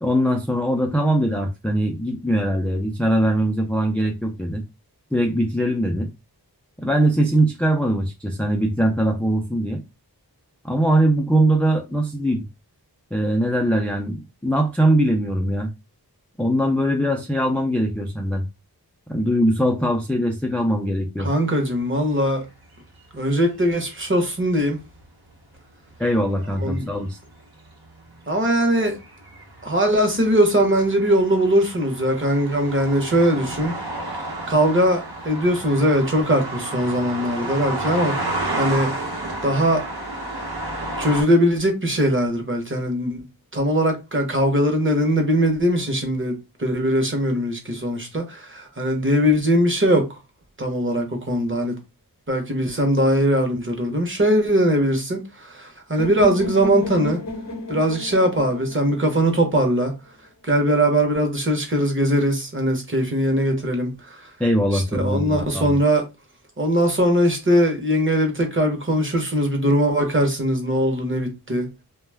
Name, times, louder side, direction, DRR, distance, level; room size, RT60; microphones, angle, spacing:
voice 1, 0.0-4.6 5.1-6.1 6.8-9.8 10.6-12.4 13.1-15.7 16.4-18.4 19.1-21.3 26.0-27.2 64.4-65.8, right 1 dB, 5° left, 0.4 m, -21 dB
voice 2, 21.2-22.5 23.1-24.8 26.6-26.9 28.3-29.0 29.6-33.8 34.5-39.1 39.4-39.9 41.0-43.2 43.5-50.2 50.6-51.8 52.3-57.2 57.7-60.0 60.4-64.3 64.7-66.0 66.6-71.7, equal, 30° right, 0.9 m, -21 dB
sound 1, 24.7-25.0 26.2-27.3 28.0-41.2, right 2 dB, 65° right, 0.9 m, -31 dB
sound 2, 56.0-59.9, left 2 dB, 45° left, 0.8 m, -33 dB
2.3 x 2.0 x 3.3 m
wide cardioid pair, 60°, 40 cm